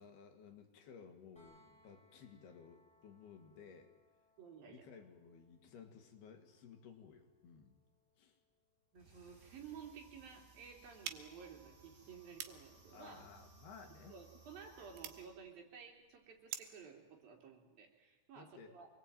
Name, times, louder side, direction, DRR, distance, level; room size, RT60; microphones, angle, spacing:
voice 1, 0.0-3.9 4.6-7.8 8.2-8.4 12.9-14.1 18.4-18.8, left 6 dB, 65° left, 5 dB, 4.0 m, -57 dB
sound 1, 1.4-13.2 15.1-15.2, left 1 dB, ahead, 7.6 m, -75 dB
voice 2, 4.4-4.8 8.9-13.3 14.1-18.9, right 6 dB, 55° right, 2 dB, 5.1 m, -54 dB
sound 2, 8.9-15.2, right 3 dB, 20° right, 8.2 m, -63 dB
sound 3, 11.0-16.9, right 10 dB, 80° right, 3.5 m, -51 dB
26.5 x 20.5 x 9.2 m, 1.2 s
omnidirectional pair, 5.0 m